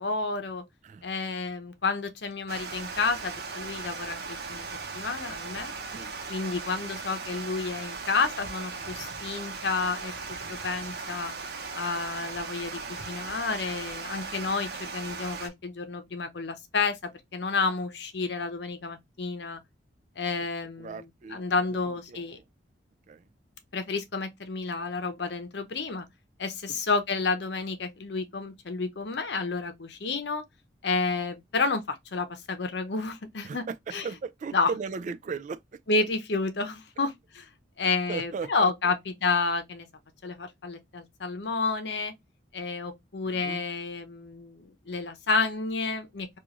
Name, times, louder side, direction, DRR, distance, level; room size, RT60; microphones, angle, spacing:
voice 1, 0.0-0.6 1.0-4.7 4.9-5.7 6.3-10.1 10.5-11.3 11.7-19.6 20.2-21.0 21.3-22.4 23.7-26.1 26.4-30.4 30.8-33.7 33.9-34.0 34.5-34.7 35.9-37.5 37.8-39.9 40.2-42.1 42.5-46.3, left 4 dB, 70° left, 0.7 m, -30 dB
Water, 2.5-15.5, right 4 dB, 60° right, 0.8 m, -38 dB
voice 2, 20.8-22.4 23.1-23.3 26.7-26.8 33.4-35.8 37.8-38.9 43.2-43.6, right 5 dB, 45° right, 0.3 m, -38 dB
3.0 x 2.4 x 3.6 m
head